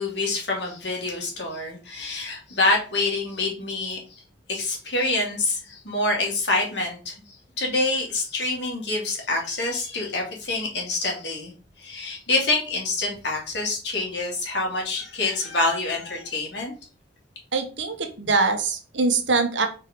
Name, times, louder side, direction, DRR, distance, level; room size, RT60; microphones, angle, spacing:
voice 1, 0.0-4.0 4.5-7.1 7.6-11.5 11.8-16.7, left 2 dB, 65° left, 0 dB, 2.7 m, -26 dB
voice 2, 17.5-19.7, right 4 dB, 80° right, 6 dB, 1.3 m, -23 dB
4.8 x 4.5 x 5.2 m, 0.36 s
head